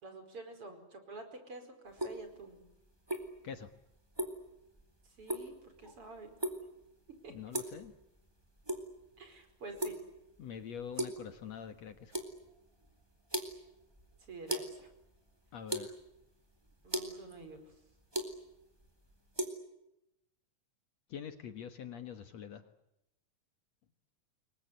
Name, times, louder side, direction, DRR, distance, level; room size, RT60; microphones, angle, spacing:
voice 1, 0.0-2.6 5.0-6.3 7.2-7.3 9.2-10.0 14.3-14.9 16.8-17.7, right 3 dB, 40° right, 7 dB, 5.7 m, -48 dB
sound 1, 1.9-19.5, right 1 dB, 5° right, 3.5 m, -41 dB
voice 2, 7.3-7.9 10.4-12.2 15.5-16.0 21.1-22.6, left 8 dB, 60° left, 9 dB, 2.4 m, -45 dB
29.0 x 23.5 x 8.2 m, 0.87 s
omnidirectional pair, 3.8 m